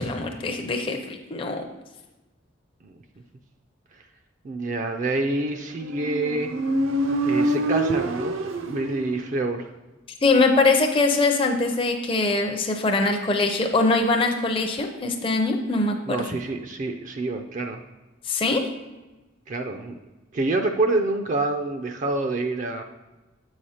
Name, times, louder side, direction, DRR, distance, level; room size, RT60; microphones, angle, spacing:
voice 1, 0.0-1.6 10.2-16.2 18.3-18.6, left 3 dB, 25° left, 3 dB, 0.5 m, -22 dB
voice 2, 4.4-6.5 7.2-8.4 8.6-9.7 16.1-17.8 19.5-20.0 20.3-22.8, right 2 dB, 40° right, 5 dB, 0.4 m, -27 dB
Motorcycle, 5.8-9.5, right 1 dB, 80° right, 0.6 m, -26 dB
7.9 x 4.9 x 4.2 m, 1.1 s
head